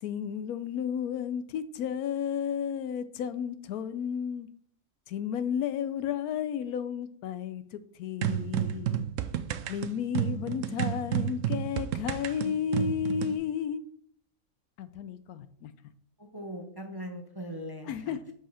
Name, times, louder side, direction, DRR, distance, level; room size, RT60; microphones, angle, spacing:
voice 1, 0.0-4.5 5.1-9.0 9.7-13.8 14.8-15.7 17.9-18.2, left 8 dB, 85° left, 13 dB, 1.1 m, -32 dB
sound 1, 8.2-13.4, right 10 dB, 70° right, 0.8 m, -31 dB
voice 2, 16.2-18.3, equal, 25° right, 3 dB, 0.5 m, -40 dB
5.5 x 4.8 x 5.6 m, 0.62 s
omnidirectional pair, 1.5 m